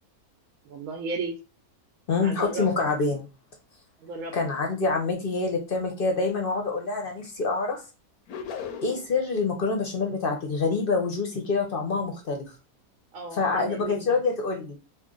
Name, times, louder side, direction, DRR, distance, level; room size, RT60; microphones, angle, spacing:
voice 1, 0.6-1.4 2.2-2.7 4.0-4.4 13.1-14.1, right 4 dB, 70° right, 4 dB, 0.9 m, -34 dB
voice 2, 2.1-3.2 4.3-7.8 8.8-12.5 13.3-14.8, left 4 dB, 50° left, 2 dB, 0.7 m, -26 dB
sound 1, 8.3-9.2, left 7 dB, 85° left, 1.1 m, -36 dB
2.9 x 2.4 x 3.7 m, 0.31 s
omnidirectional pair, 1.5 m